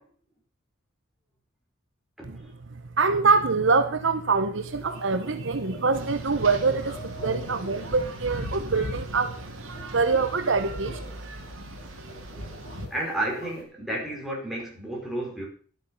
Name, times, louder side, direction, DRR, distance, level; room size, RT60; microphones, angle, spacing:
voice 1, 2.2-2.5 12.9-15.5, right 1 dB, ahead, 5.2 m, -32 dB
voice 2, 3.0-9.3 9.9-11.0, right 4 dB, 65° right, 0.9 m, -24 dB
sound 1, 4.6-13.6, left 1 dB, 50° left, 4.2 m, -46 dB
sound 2, 5.9-12.9, equal, 85° right, 2.4 m, -38 dB
12.5 x 8.3 x 5.6 m
head